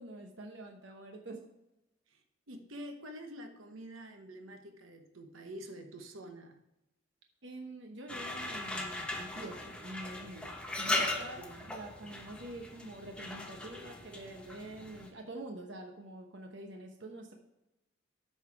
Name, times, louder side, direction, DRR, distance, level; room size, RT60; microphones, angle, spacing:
voice 1, 0.0-1.4 7.4-11.4 11.7-17.4, right 1 dB, 60° right, 3 dB, 0.9 m, -46 dB
voice 2, 2.1-6.6 11.3-11.7, right 1 dB, 85° right, 5 dB, 1.1 m, -47 dB
sound 1, 8.1-15.1, left 2 dB, 5° left, 0.9 m, -38 dB
8.5 x 5.6 x 4.7 m, 0.92 s
head